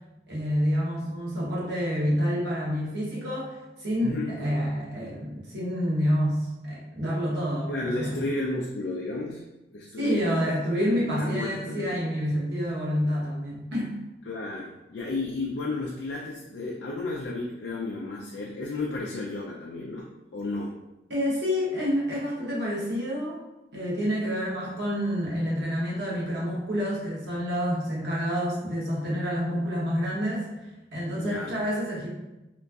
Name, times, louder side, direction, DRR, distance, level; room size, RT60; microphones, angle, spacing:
voice 1, 0.3-8.2 10.0-13.9 21.1-23.4 23.7-30.5 30.9-32.1, equal, 70° right, -5 dB, 1.0 m, -28 dB
voice 2, 7.7-9.4 9.7-10.6 11.0-12.2 14.3-20.7 31.1-31.5, left 2 dB, 75° left, -2 dB, 0.4 m, -33 dB
2.9 x 2.5 x 2.3 m, 0.99 s
head